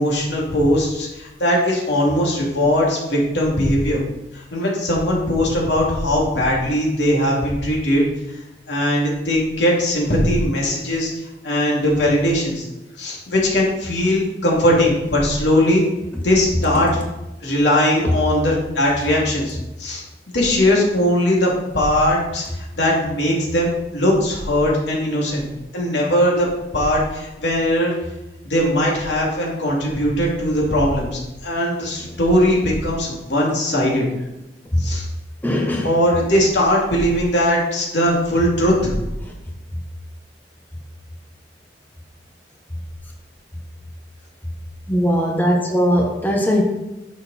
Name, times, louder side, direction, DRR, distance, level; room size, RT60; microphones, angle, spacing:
voice 1, 0.0-4.0 4.3-8.0 8.7-11.1 11.4-12.7 13.0-15.8 16.2-17.0 17.4-25.4 25.7-27.9 28.4-34.1 34.8-35.1 35.8-38.9, left 1 dB, 80° left, -3 dB, 2.7 m, -19 dB
voice 2, 35.4-35.9 44.9-46.6, equal, 10° left, 0 dB, 1.0 m, -19 dB
9.6 x 6.5 x 4.2 m, 0.97 s
head